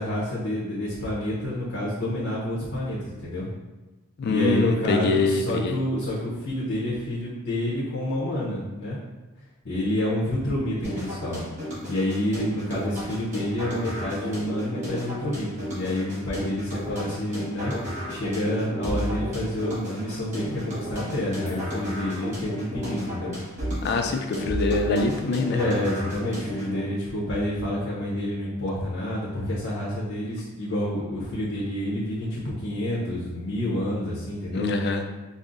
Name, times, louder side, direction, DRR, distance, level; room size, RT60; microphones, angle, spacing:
voice 1, 0.0-3.5 4.2-9.0 9.6-11.4 11.9-17.7 18.1-23.3 25.5-34.7, left 1 dB, 75° left, -7 dB, 0.8 m, -28 dB
voice 2, 4.2-5.8 23.8-25.6 34.6-35.0, left 3 dB, 50° left, 5 dB, 0.3 m, -24 dB
sound 1, 10.8-26.8, equal, 30° right, 1.4 m, -33 dB
5.3 x 2.0 x 2.5 m, 1.1 s
head